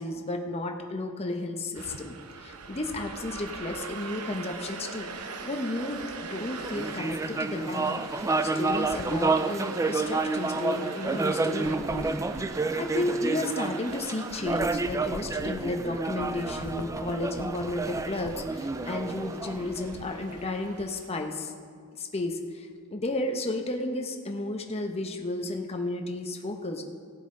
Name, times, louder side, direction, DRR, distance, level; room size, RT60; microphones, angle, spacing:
voice 1, 0.0-5.1 5.4-12.1 12.4-21.5 22.0-26.8, left 2 dB, 30° left, 3 dB, 0.9 m, -33 dB
sound 1, 1.7-21.1, right 4 dB, 85° right, 0.8 m, -42 dB
sound 2, 5.1-5.3 6.6-9.5 10.2-10.3 11.4-14.0 14.3-18.6 19.0-19.9, left 3 dB, 75° left, 0.5 m, -46 dB
sound 3, 6.6-20.3, right 3 dB, 15° right, 0.3 m, -30 dB
17.0 x 9.2 x 3.8 m, 2.1 s
head